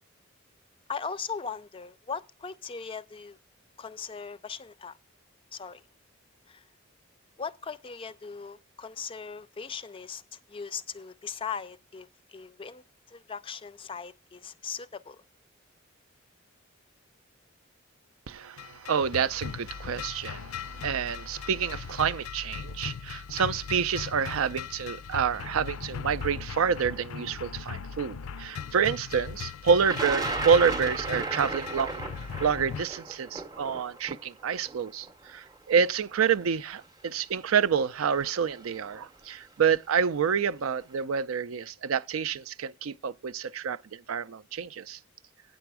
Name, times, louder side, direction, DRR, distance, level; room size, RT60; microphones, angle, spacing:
voice 1, 0.9-3.4 3.8-5.0 5.5-5.8 6.5-6.6 7.4-15.2, left 6 dB, 25° left, 0.4 m, -39 dB
voice 2, 18.3-32.0 32.4-45.0, right 6 dB, 85° right, 0.4 m, -28 dB
sound 1, 18.6-32.9, left 6 dB, 85° left, 0.4 m, -39 dB
Thunder, 29.8-35.8 36.7-36.8 37.9-38.2 38.5-39.0, right 3 dB, 20° right, 0.6 m, -34 dB
9.0 x 6.9 x 4.7 m
head